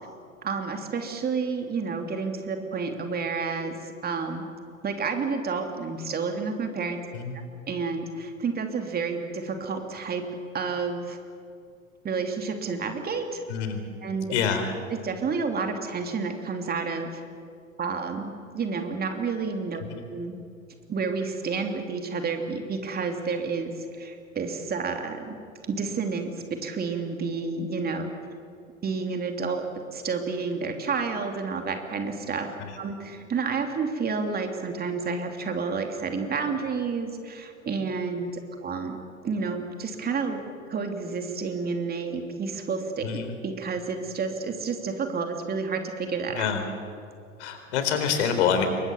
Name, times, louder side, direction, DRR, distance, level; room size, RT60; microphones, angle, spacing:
voice 1, 0.4-4.4 4.8-7.0 7.7-10.2 10.5-11.2 12.0-13.4 14.0-14.3 15.0-17.2 17.8-19.8 20.1-20.3 20.9-25.4 25.7-26.3 26.6-28.1 28.8-29.6 29.9-39.0 39.2-40.4 40.7-46.5, right 4 dB, 25° right, 4 dB, 3.0 m, -30 dB
voice 2, 13.5-13.8 14.3-14.7 19.9-20.0 32.6-32.8 43.0-43.4 46.3-46.6 47.4-48.7, left 7 dB, 55° left, 7 dB, 4.2 m, -26 dB
28.0 x 24.0 x 7.2 m, 2.3 s
figure-of-eight pair, 90°, 40 cm